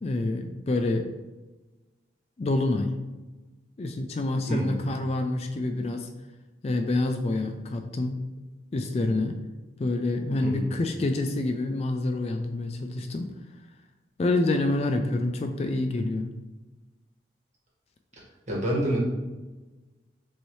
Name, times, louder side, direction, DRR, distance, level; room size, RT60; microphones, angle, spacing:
voice 1, 0.0-1.1 2.4-3.0 3.8-6.1 6.6-8.2 8.7-9.4 9.8-13.3 14.2-16.3, left 2 dB, 35° left, 5 dB, 0.3 m, -27 dB
voice 2, 4.5-4.8 10.4-10.7 18.5-19.0, right 1 dB, 40° right, -4 dB, 1.4 m, -27 dB
6.1 x 2.7 x 3.1 m, 1.2 s
head